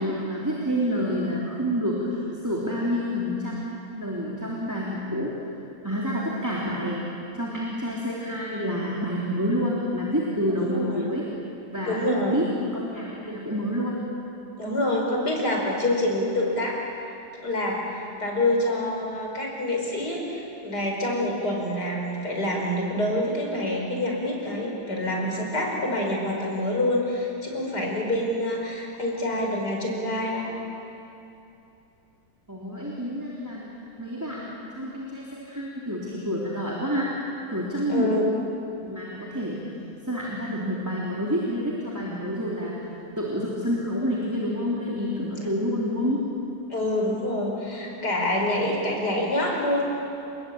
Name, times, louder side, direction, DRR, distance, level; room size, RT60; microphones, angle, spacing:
voice 1, 0.0-5.5 5.8-7.0 7.3-11.3 11.7-12.0 12.3-12.5 12.7-14.0 32.5-33.6 34.0-37.1 37.5-38.1 38.8-39.6 40.0-42.8 43.2-46.2, equal, 10° right, -5 dB, 3.2 m, -28 dB
voice 2, 10.6-11.1 11.9-12.4 14.6-16.8 17.4-30.6 37.9-38.3 46.7-49.9, left 1 dB, 75° left, 0 dB, 5.6 m, -26 dB
29.5 x 20.5 x 8.7 m, 2.8 s
omnidirectional pair, 1.8 m